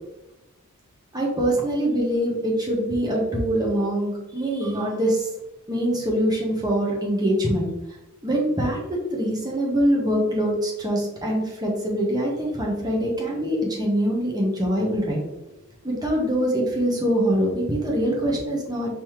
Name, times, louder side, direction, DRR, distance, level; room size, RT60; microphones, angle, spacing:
voice 1, 1.1-5.3 5.7-7.7 8.2-15.2 15.8-18.9, equal, 20° right, -3 dB, 1.1 m, -24 dB
5.4 x 3.1 x 3.1 m, 1.0 s
head